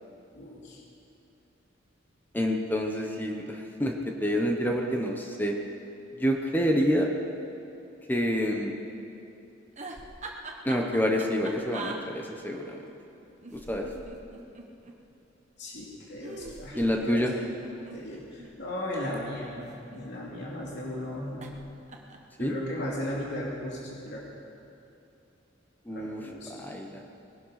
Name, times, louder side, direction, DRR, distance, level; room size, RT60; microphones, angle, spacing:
voice 1, 0.3-0.8 13.6-13.7 15.6-16.8 17.0-17.2 17.7-19.5 19.9-21.5 22.4-24.2 25.9-26.7, left 1 dB, 60° left, -4 dB, 2.9 m, -36 dB
voice 2, 2.3-3.9 4.2-5.5 6.2-7.1 8.1-8.7 10.6-12.8 13.5-13.9 16.7-17.3 22.4-22.6 25.9-26.2 26.6-27.0, equal, 10° left, 1 dB, 1.2 m, -27 dB
sound 1, 9.7-12.0 13.4-14.9 16.2-18.5 19.4-20.4 21.4-21.6 21.9-22.3, right 3 dB, 40° right, 1.3 m, -42 dB
20.5 x 11.5 x 5.9 m, 2.9 s
head